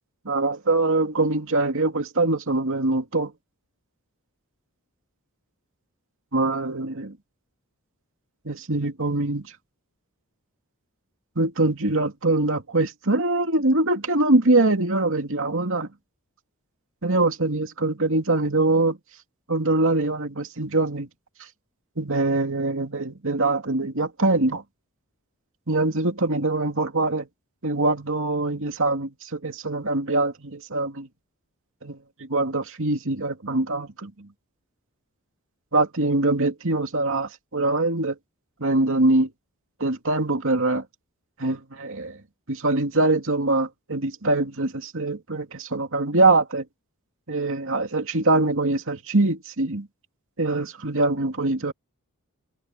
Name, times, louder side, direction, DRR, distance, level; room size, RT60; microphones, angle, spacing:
voice 1, 0.2-3.3 6.3-7.1 8.5-9.4 11.4-15.9 17.0-19.0 19.5-21.1 22.0-24.6 25.7-27.3 27.6-31.1 31.8-32.0 32.3-34.1 35.7-38.1 38.6-39.3 39.8-40.8 41.4-42.2 42.5-46.6 47.3-49.9 50.4-51.7, right 2 dB, 60° right, 2.7 m, -23 dB
head